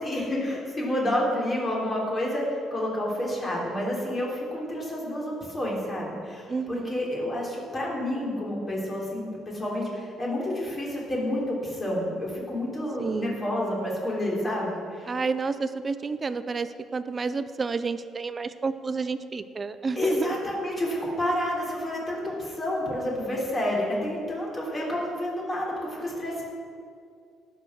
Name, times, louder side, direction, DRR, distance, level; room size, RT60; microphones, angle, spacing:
voice 1, 0.0-15.1 20.0-26.4, left 1 dB, 25° left, -3 dB, 3.6 m, -29 dB
voice 2, 6.5-7.0 13.0-13.4 15.1-20.3, right 4 dB, 25° right, 12 dB, 0.6 m, -30 dB
19.0 x 6.6 x 6.3 m, 2.4 s
cardioid pair, 140°, 0 cm